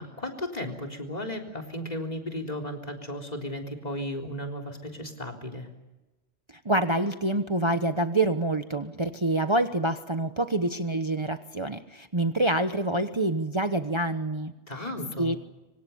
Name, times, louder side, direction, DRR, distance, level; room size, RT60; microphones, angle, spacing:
voice 1, 0.0-5.7 14.7-15.3, left 1 dB, 40° left, 7 dB, 3.8 m, -35 dB
voice 2, 6.6-14.5 15.2-15.4, right 1 dB, 25° right, 8 dB, 1.1 m, -26 dB
26.0 x 25.5 x 7.0 m, 1.1 s
omnidirectional pair, 1.1 m